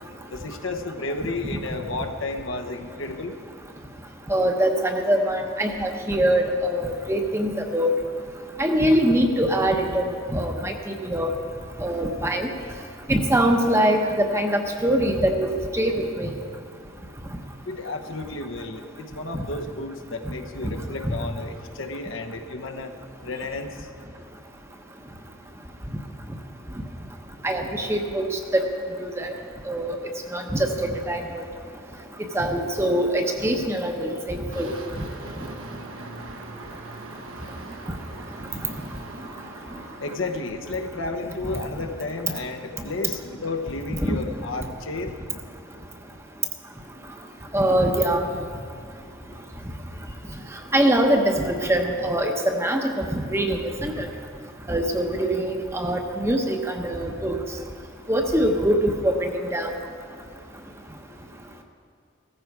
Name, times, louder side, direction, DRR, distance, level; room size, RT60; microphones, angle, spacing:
voice 1, 0.3-3.4 17.6-22.9 23.2-23.9 40.0-45.1, left 2 dB, 75° left, 4 dB, 1.0 m, -32 dB
voice 2, 4.3-7.9 8.6-10.0 10.3-11.3 11.8-12.5 13.1-16.4 21.0-21.1 27.4-28.6 29.0-29.3 29.7-30.0 30.3-31.5 32.3-34.7 44.1-44.2 47.5-48.2 50.7-54.1 54.7-57.4 58.1-59.7, right 1 dB, 15° right, 3 dB, 0.9 m, -23 dB
sound 1, 34.5-40.2, right 2 dB, 80° right, 1.3 m, -40 dB
16.0 x 14.5 x 4.7 m, 2.3 s
head